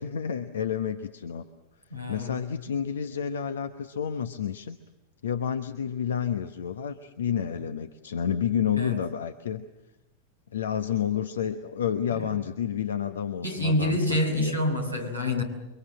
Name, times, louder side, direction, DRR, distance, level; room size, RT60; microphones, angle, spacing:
voice 1, 0.0-1.4 2.1-4.8 5.2-9.6 10.5-14.6, left 8 dB, 65° left, 1.1 m, -30 dB
voice 2, 1.9-2.4 8.8-9.0 12.1-12.2 13.4-15.4, left 1 dB, 90° left, 5.7 m, -27 dB
29.5 x 24.5 x 7.5 m
figure-of-eight pair, 90°, 0 cm